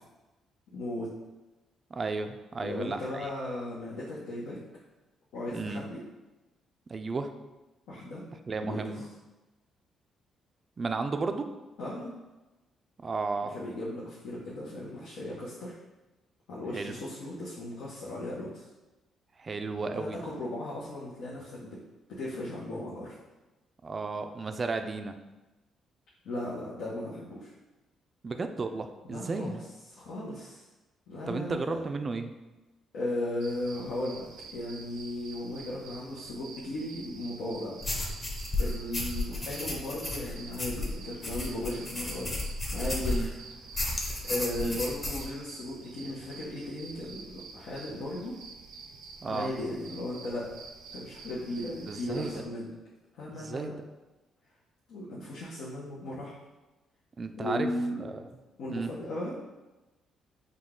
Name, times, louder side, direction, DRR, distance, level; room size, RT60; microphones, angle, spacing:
voice 1, 0.7-1.1 2.6-4.6 5.3-6.0 7.9-8.2 8.6-9.0 11.8-12.1 13.4-15.7 16.5-18.7 19.9-21.8 22.1-23.2 26.2-27.5 29.1-29.6 29.9-30.6 31.1-31.8 32.9-37.8 38.6-42.4 42.7-43.3 43.8-48.4 49.3-50.6 50.9-52.7 53.1-53.7 54.9-56.4 57.4-58.0 58.6-59.3, left 1 dB, 80° left, -7 dB, 0.8 m, -36 dB
voice 2, 1.9-3.3 5.5-5.8 6.9-7.3 8.5-9.0 10.8-11.5 13.0-13.5 16.7-16.9 19.4-20.2 23.8-25.1 28.2-29.6 31.3-32.3 43.1-43.3 44.6-44.8 49.2-49.5 51.9-52.3 53.3-53.7 57.2-57.7 58.0-58.2 58.7-58.9, right 4 dB, 35° right, 7 dB, 0.4 m, -33 dB
sound 1, 33.4-52.4, right 4 dB, 85° right, 0.5 m, -48 dB
sound 2, 37.8-43.3 43.7-45.3, left 2 dB, 25° left, 0.9 m, -33 dB
5.2 x 2.3 x 3.6 m, 1.1 s
cardioid pair, 90°, 0 cm